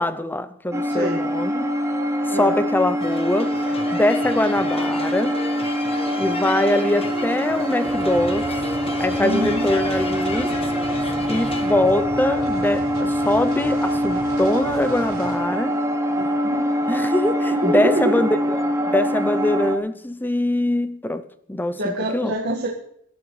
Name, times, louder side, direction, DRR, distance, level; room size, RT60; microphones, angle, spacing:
voice 1, 0.0-1.7 2.3-3.6 3.9-5.4 6.2-8.7 9.0-10.6 11.3-15.8 16.9-22.3, left 1 dB, 10° left, 0.6 m, -23 dB
sound 1, 0.7-19.8, equal, 15° right, 0.9 m, -24 dB
voice 2, 0.9-1.3 2.3-2.6 9.2-9.6 16.2-16.7 17.5-18.3 21.7-22.7, equal, 50° right, 1.9 m, -25 dB
sound 2, 3.0-11.7, left 3 dB, 30° left, 1.4 m, -34 dB
sound 3, 7.9-15.4, left 1 dB, 50° left, 6.2 m, -37 dB
25.0 x 12.0 x 3.3 m
head